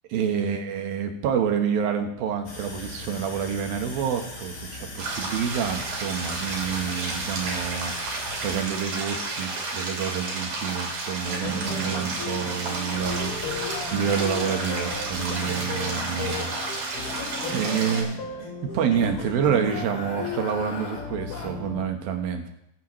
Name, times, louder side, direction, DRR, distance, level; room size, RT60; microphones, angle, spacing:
voice 1, 0.1-13.5 13.9-16.5 17.5-18.1 18.6-22.5, right 7 dB, 85° right, 5 dB, 3.1 m, -28 dB
sound 1, 2.5-8.5, left 2 dB, 75° left, 5.5 m, -39 dB
sound 2, 5.0-18.0, right 3 dB, 65° right, 4.3 m, -32 dB
sound 3, 11.2-21.9, left 3 dB, 40° left, 2.7 m, -34 dB
22.0 x 9.1 x 3.2 m, 0.77 s
omnidirectional pair, 4.1 m